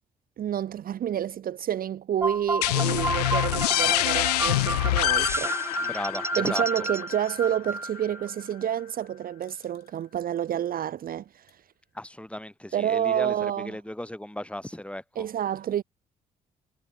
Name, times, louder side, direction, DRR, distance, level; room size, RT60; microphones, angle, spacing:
voice 1, 0.4-5.5 6.4-11.5 12.7-13.7 15.2-15.8, right 10 dB, 45° right, 0.8 m, -29 dB
sound 1, 0.9-1.7 2.0-2.1 2.3-2.5 2.8-2.9 3.6-5.0 6.2-6.3 8.9-9.1 9.4-10.1 11.2-11.6 12.2-12.9 13.2-13.3, left 9 dB, 50° left, 3.1 m, -58 dB
sound 2, 2.2-8.3, right 2 dB, 10° right, 1.1 m, -31 dB
sound 3, 2.6-8.1, left 18 dB, 80° left, 0.4 m, -26 dB
voice 2, 5.8-6.6 11.9-15.3, left 1 dB, 5° left, 3.5 m, -36 dB
figure-of-eight pair, 45°, 20 cm